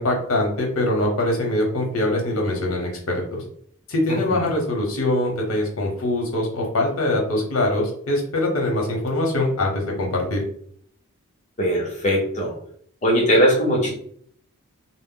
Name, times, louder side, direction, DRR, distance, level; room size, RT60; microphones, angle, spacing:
voice 1, 0.0-3.4 3.9-10.4, left 1 dB, 75° left, 0 dB, 0.8 m, -23 dB
voice 2, 4.1-4.4 11.6-12.5 13.0-13.9, equal, 35° left, -3 dB, 0.8 m, -20 dB
2.0 x 2.0 x 3.7 m, 0.62 s
head